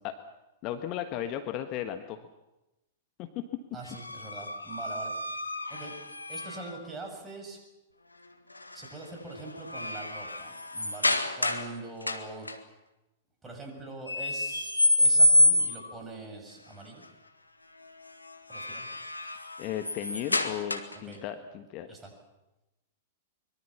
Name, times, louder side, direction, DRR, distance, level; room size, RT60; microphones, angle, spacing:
voice 1, 0.6-2.3 3.2-3.4 19.6-21.9, left 11 dB, 35° left, 8 dB, 1.4 m, -35 dB
voice 2, 3.7-5.9 6.3-7.6 8.7-12.5 13.4-14.7 15.0-17.1 18.5-19.0 20.9-21.2 21.9-22.1, right 3 dB, 15° right, 2 dB, 6.9 m, -43 dB
sound 1, 3.9-6.8 8.6-8.9 9.3-11.7 12.0-12.6 14.1-16.0 18.3-21.1, left 1 dB, 80° left, 1.6 m, -27 dB
24.0 x 22.5 x 7.3 m, 0.98 s
figure-of-eight pair, 100°, 0 cm